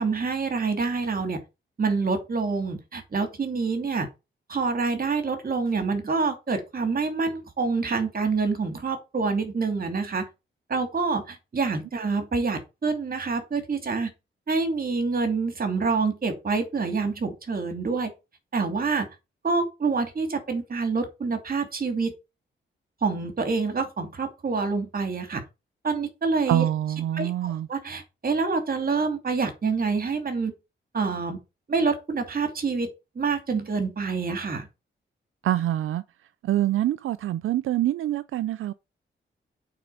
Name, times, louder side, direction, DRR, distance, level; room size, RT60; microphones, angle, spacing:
voice 1, 0.0-1.4 1.8-4.1 4.5-10.3 10.7-14.1 14.5-18.1 18.5-19.1 19.4-22.1 23.0-25.4 25.8-26.6 27.1-30.5 30.9-31.4 31.7-34.7, right 4 dB, 45° right, 2.8 m, -27 dB
voice 2, 26.5-27.7 35.4-36.0 36.4-38.7, right 12 dB, 85° right, 0.4 m, -25 dB
8.5 x 4.2 x 7.0 m
cardioid pair, 80°, 20 cm